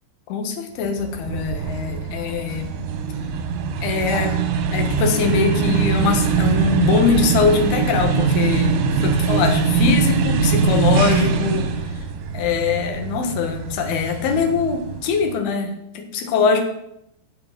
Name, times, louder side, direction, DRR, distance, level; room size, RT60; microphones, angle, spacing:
voice 1, 0.3-2.7 3.8-4.4 4.7-11.7 12.3-16.6, left 5 dB, 70° left, 4 dB, 3.4 m, -22 dB
sound 1, 0.8-15.3, right 5 dB, 90° right, 3.5 m, -22 dB
12.0 x 8.0 x 7.4 m, 0.79 s
omnidirectional pair, 4.9 m